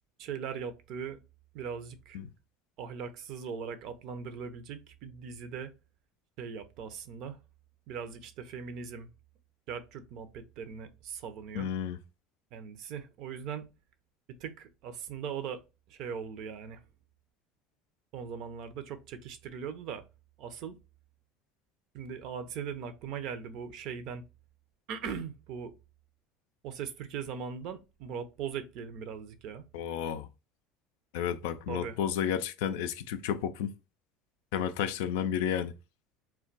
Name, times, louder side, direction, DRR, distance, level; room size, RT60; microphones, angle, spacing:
voice 1, 0.2-1.2 1.5-2.2 2.8-5.7 6.4-7.4 7.9-9.1 9.7-11.7 12.5-13.6 14.4-15.6 15.9-16.8 18.1-20.0 20.4-20.8 21.9-24.2 24.9-25.7 26.6-29.6 31.7-32.0, right 7 dB, 60° right, 0.5 m, -39 dB
voice 2, 11.6-12.0 29.7-30.3 31.1-33.7 34.5-35.7, left 9 dB, 80° left, 0.3 m, -32 dB
2.2 x 2.2 x 3.9 m
supercardioid pair, 95°, 0 cm